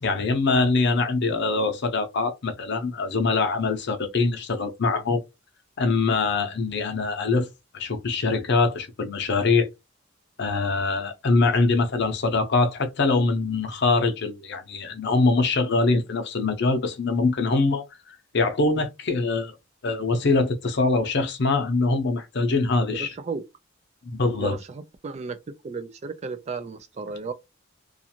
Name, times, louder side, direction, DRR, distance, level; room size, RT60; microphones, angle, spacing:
voice 1, 0.0-5.2 5.8-7.5 7.7-9.7 10.4-17.8 18.3-19.6 19.8-23.1 24.0-24.6, left 3 dB, 60° left, 0.7 m, -23 dB
voice 2, 22.9-23.4 24.4-25.4 25.6-27.3, right 4 dB, 35° right, 0.4 m, -34 dB
2.5 x 2.4 x 2.8 m
head